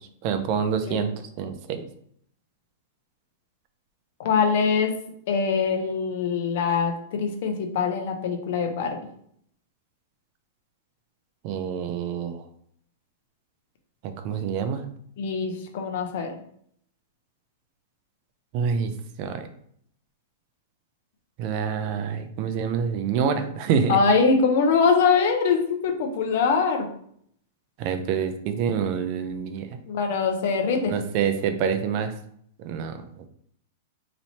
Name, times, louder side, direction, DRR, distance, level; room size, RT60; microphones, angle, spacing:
voice 1, 0.2-1.1 1.4-1.8 11.4-12.4 14.0-14.8 18.5-18.9 19.2-19.5 21.4-24.0 27.8-29.7 30.9-32.1 32.6-33.0, right 7 dB, 50° right, 8 dB, 0.5 m, -26 dB
voice 2, 4.2-5.0 5.3-9.0 15.2-16.4 23.9-26.9 29.9-30.9, left 5 dB, 65° left, 4 dB, 0.8 m, -23 dB
3.1 x 2.7 x 4.1 m, 0.67 s
hypercardioid pair, 120°, 0 cm